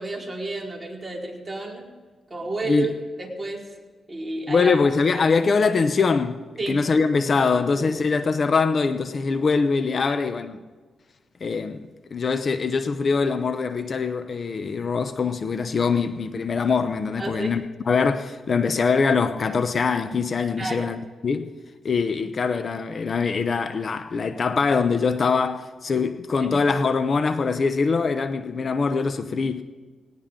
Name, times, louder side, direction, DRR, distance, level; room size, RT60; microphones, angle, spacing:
voice 1, 0.0-1.9 2.3-2.9 3.2-3.6 4.1-4.7 6.6-6.8 7.7-7.9 10.1-10.2 17.2-17.5 20.6-20.9 26.4-26.6, right 3 dB, 20° right, 4.3 m, -31 dB
voice 2, 4.5-6.4 6.7-10.6 11.4-11.9 12.1-21.0 21.2-21.6 21.8-29.6, left 5 dB, 50° left, 0.8 m, -23 dB
19.5 x 18.5 x 3.8 m
cardioid pair, 100°, 0 cm